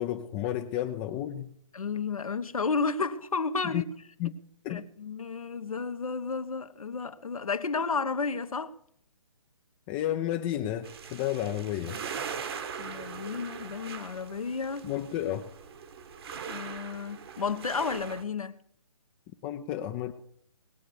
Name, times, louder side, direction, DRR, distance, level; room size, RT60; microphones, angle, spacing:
voice 1, 0.0-1.5 3.7-3.8 4.2-4.3 4.6-4.8 9.9-12.0 14.8-15.5 19.4-20.1, left 12 dB, 15° left, 0.5 m, -31 dB
voice 2, 1.7-3.9 4.7-8.7 12.8-14.9 16.5-18.5, left 4 dB, 80° left, 1.3 m, -32 dB
sound 1, 10.8-18.2, right 7 dB, 45° right, 1.4 m, -41 dB
20.5 x 6.9 x 6.3 m
hypercardioid pair, 145°, 18 cm